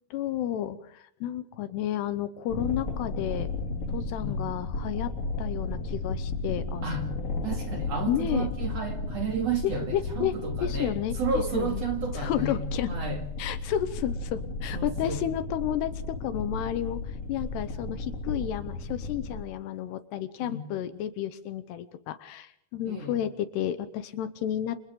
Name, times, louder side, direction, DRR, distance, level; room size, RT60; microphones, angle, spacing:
voice 1, 0.1-3.5 3.9-5.1 5.4-7.0 7.3-7.5 8.1-8.5 9.6-11.8 12.1-12.9 13.4-24.9, left 11 dB, 75° left, 12 dB, 2.9 m, -32 dB
sound 1, 2.5-19.4, left 2 dB, 35° left, 3.4 m, -34 dB
voice 2, 4.2-4.5 6.8-7.1 7.4-13.2 14.7-15.3 20.4-20.7 22.9-23.2, right 4 dB, 45° right, 3 dB, 2.9 m, -32 dB
28.5 x 28.0 x 3.8 m, 0.67 s
omnidirectional pair, 5.1 m